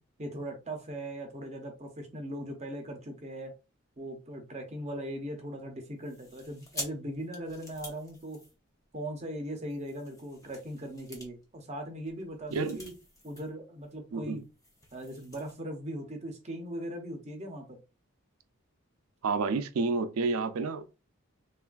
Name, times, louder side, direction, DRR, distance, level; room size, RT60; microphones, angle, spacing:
voice 1, 0.2-3.5 4.0-8.4 8.9-12.9 13.2-14.5 14.9-17.8, right 1 dB, 30° right, 0.6 m, -39 dB
sound 1, 6.0-9.1 9.6-13.5 13.8-13.9 14.3-15.5, left 1 dB, 15° left, 0.5 m, -47 dB
voice 2, 19.2-21.0, right 4 dB, 80° right, 0.4 m, -30 dB
3.3 x 2.4 x 2.2 m
head